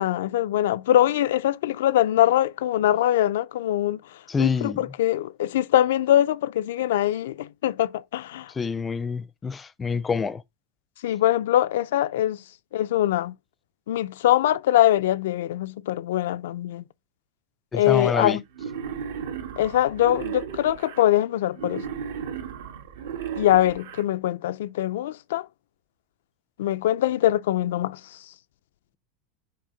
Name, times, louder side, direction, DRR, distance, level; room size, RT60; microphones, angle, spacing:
voice 1, 0.0-4.0 4.4-8.5 11.0-12.4 12.7-13.3 13.9-16.8 17.7-18.4 19.6-21.8 23.4-25.5 26.6-28.0, left 13 dB, 80° left, 0.4 m, -23 dB
voice 2, 4.3-4.8 8.5-10.4 17.7-18.4, left 5 dB, 15° left, 0.4 m, -26 dB
Wild animals, 18.5-21.0 21.5-24.0, right 7 dB, 90° right, 1.6 m, -35 dB
6.5 x 4.2 x 3.8 m
supercardioid pair, 140°, 0 cm